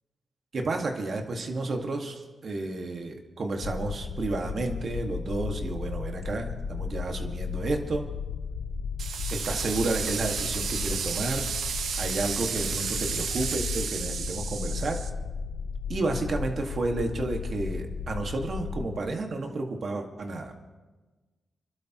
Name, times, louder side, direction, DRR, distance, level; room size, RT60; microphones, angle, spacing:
voice 1, 0.5-8.0 9.3-11.5 12.0-15.0 15.9-20.6, right 2 dB, 60° right, 3 dB, 1.9 m, -31 dB
sound 1, 3.6-19.0, left 5 dB, 80° left, 0.8 m, -35 dB
sound 2, 9.0-15.1, right 7 dB, 80° right, 0.8 m, -32 dB
29.5 x 12.0 x 3.1 m, 1.2 s
cardioid pair, 60°, 0 cm